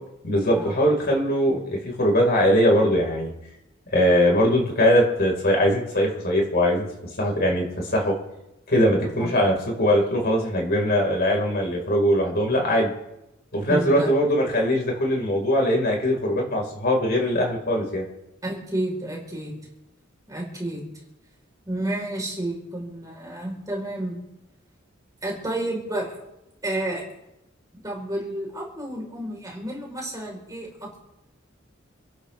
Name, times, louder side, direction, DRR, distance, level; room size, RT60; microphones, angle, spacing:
voice 1, 0.2-3.3 3.9-6.8 7.2-8.2 8.7-12.9 13.5-18.1, equal, 50° left, -1 dB, 5.1 m, -21 dB
voice 2, 13.7-14.1 18.4-19.6 20.3-20.9 21.7-24.2 25.2-26.1 26.6-27.0 27.8-31.1, right 1 dB, 20° right, -2 dB, 4.7 m, -30 dB
28.5 x 12.0 x 3.6 m, 0.91 s
head